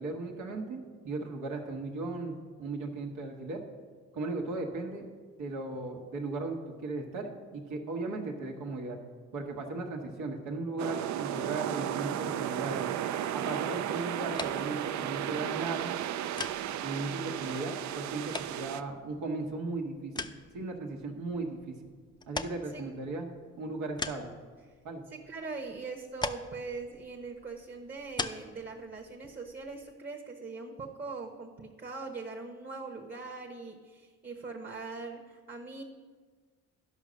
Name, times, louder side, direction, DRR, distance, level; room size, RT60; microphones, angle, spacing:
voice 1, 0.0-3.6 4.1-5.1 5.4-9.0 9.3-12.8 13.3-15.9 16.8-21.7 22.3-23.3 23.6-24.3 24.8-25.0, right 3 dB, 90° right, 1 dB, 1.5 m, -37 dB
sound 1, 10.8-18.8, right 11 dB, 70° right, 0.5 m, -34 dB
sound 2, 14.3-29.9, left 3 dB, 15° left, 0.4 m, -43 dB
voice 2, 25.1-35.8, right 4 dB, 30° right, 1 dB, 1.0 m, -41 dB
11.0 x 5.5 x 6.3 m, 1.5 s
cardioid pair, 90°, 30 cm